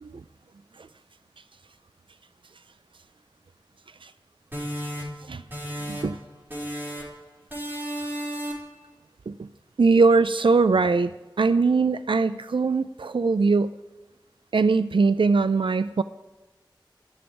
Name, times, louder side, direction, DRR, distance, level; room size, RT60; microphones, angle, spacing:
sound 1, 4.5-6.2 6.5-7.2 7.5-8.8, equal, 25° right, 4.9 m, -33 dB
voice 1, 9.8-11.1 11.4-13.7 14.5-16.0, right 4 dB, 85° right, 13 dB, 0.4 m, -21 dB
14.0 x 7.1 x 9.9 m, 1.2 s
wide cardioid pair, 55°, 8 cm